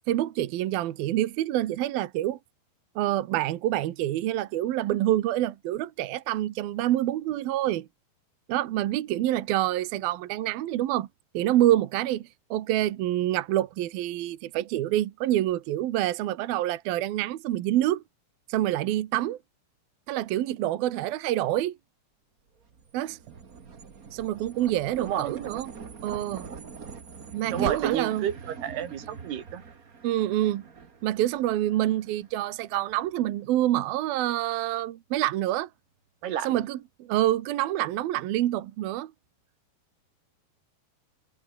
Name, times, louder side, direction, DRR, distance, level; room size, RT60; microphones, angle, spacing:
voice 1, 0.1-2.4 3.0-7.9 8.5-11.1 11.3-18.0 18.5-19.4 20.1-21.8 22.9-23.2 24.1-25.7 26.0-26.5 27.3-28.3 30.0-30.6 31.0-35.7 36.4-39.1, right 14 dB, 75° right, 3.0 m, -27 dB
sound 1, 22.6-33.1, right 5 dB, 40° right, 1.2 m, -42 dB
voice 2, 25.0-25.5 27.5-29.6 36.2-36.6, right 10 dB, 90° right, 4.2 m, -31 dB
omnidirectional pair, 4.5 m